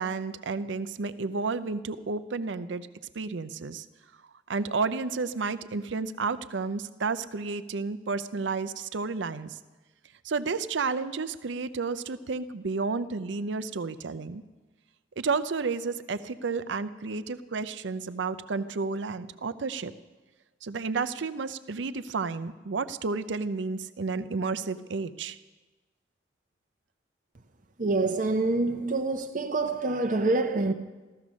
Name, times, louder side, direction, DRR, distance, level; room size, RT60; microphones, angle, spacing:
voice 1, 0.0-2.9 3.1-3.9 4.5-9.6 10.2-14.4 15.2-19.9 20.6-25.4, right 4 dB, 75° right, 0.6 m, -31 dB
voice 2, 27.8-30.7, right 3 dB, 45° right, 0.7 m, -26 dB
14.5 x 14.0 x 6.2 m
head